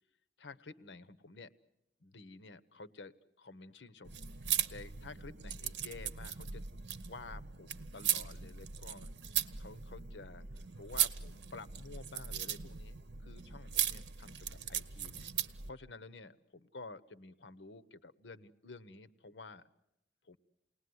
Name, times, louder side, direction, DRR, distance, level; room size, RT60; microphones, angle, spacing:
voice 1, 0.4-1.5 2.0-6.6 7.0-9.1 9.6-19.6 20.2-20.4, left 3 dB, 85° left, 13 dB, 1.0 m, -51 dB
sound 1, 4.0-15.7, right 9 dB, 85° right, 0.9 m, -38 dB
29.0 x 19.5 x 9.5 m, 0.85 s
head